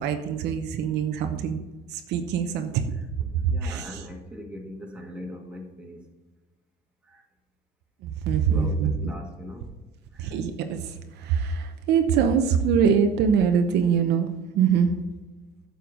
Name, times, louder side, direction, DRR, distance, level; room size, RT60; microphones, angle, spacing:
voice 1, 0.0-1.6 1.9-2.8 3.3-3.9 8.0-8.9 10.2-14.3 14.5-14.9, right 7 dB, 80° right, 6 dB, 0.9 m, -23 dB
voice 2, 2.9-6.1 7.0-7.2 8.5-9.7 10.1-10.4, left 1 dB, 5° right, 0 dB, 2.0 m, -40 dB
9.5 x 6.8 x 3.9 m, 1.2 s
cardioid pair, 110°, 17 cm